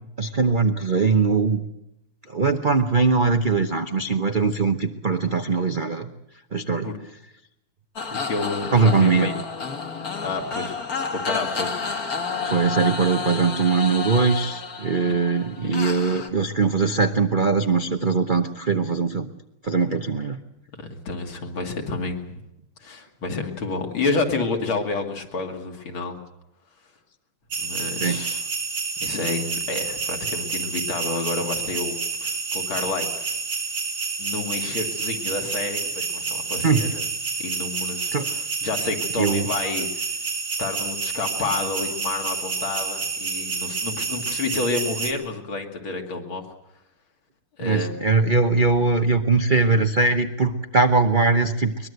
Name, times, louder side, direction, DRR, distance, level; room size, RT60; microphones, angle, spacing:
voice 1, 0.2-1.6 2.3-6.1 6.5-6.9 8.7-9.3 12.4-19.3 19.6-20.4 28.0-28.2 36.6-36.8 38.1-38.3 39.2-39.5 47.6-51.9, right 4 dB, 45° right, 6 dB, 0.6 m, -21 dB
sound 1, 8.0-16.3, left 5 dB, 45° left, 1.9 m, -30 dB
voice 2, 8.1-9.3 10.2-10.8 11.1-11.7 15.0-15.2 20.8-22.3 22.8-26.2 27.6-28.4 29.0-33.4 34.2-37.1 37.4-40.0 40.6-46.5 47.6-48.0, left 3 dB, 70° left, 3 dB, 3.2 m, -29 dB
sound 2, 27.5-45.1, right 4 dB, 85° right, 3.6 m, -29 dB
22.5 x 21.0 x 8.0 m, 0.85 s
omnidirectional pair, 2.3 m